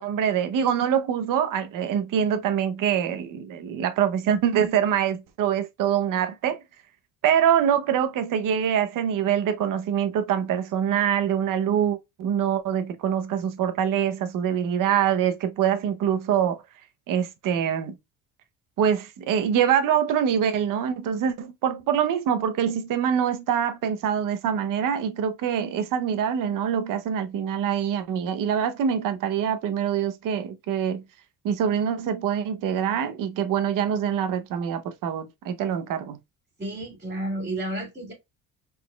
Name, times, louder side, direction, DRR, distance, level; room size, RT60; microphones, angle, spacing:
voice 1, 0.0-6.6 7.2-16.6 17.1-17.9 18.8-31.0 31.4-36.2, right 8 dB, 65° right, 0.9 m, -24 dB
voice 2, 36.6-38.1, right 1 dB, 20° right, 2.2 m, -31 dB
4.3 x 3.8 x 2.3 m
cardioid pair, 125°, 35 cm